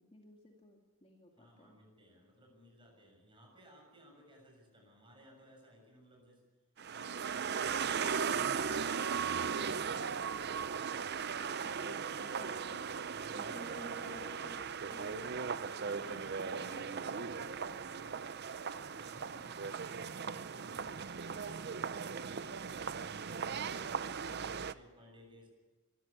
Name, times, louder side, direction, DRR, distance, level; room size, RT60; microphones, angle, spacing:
voice 1, 0.1-1.8 11.7-12.8 13.3-14.6 14.9-15.3 15.7-16.8 17.2-17.4 17.7-17.8, left 1 dB, 25° left, 1 dB, 2.1 m, -53 dB
voice 2, 1.3-6.4 6.9-8.4 13.2-13.8 16.0-20.0 20.3-23.0 23.3-25.5, equal, 25° right, 1 dB, 6.9 m, -60 dB
sound 1, 6.8-24.7, right 6 dB, 50° right, 0.6 m, -38 dB
24.0 x 14.0 x 9.7 m, 1.3 s
head